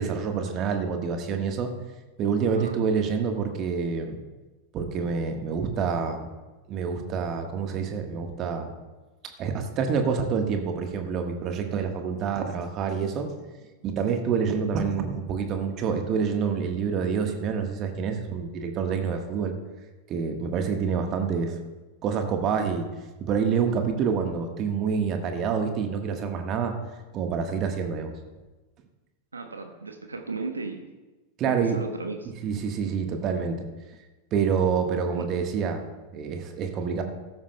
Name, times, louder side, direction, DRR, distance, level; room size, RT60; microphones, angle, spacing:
voice 1, 0.0-1.7 2.2-4.2 4.7-6.3 6.7-8.7 9.4-13.3 13.8-19.5 20.1-21.5 22.0-22.9 23.2-26.7 27.1-28.1 31.4-31.8 32.4-33.7 34.3-35.8 36.1-37.0, right 6 dB, 35° right, 5 dB, 1.3 m, -27 dB
voice 2, 29.3-30.8 31.5-32.3 35.2-35.3, right 3 dB, 80° right, 5 dB, 1.0 m, -35 dB
15.5 x 13.0 x 2.2 m, 1.2 s
figure-of-eight pair, 90°, 0 cm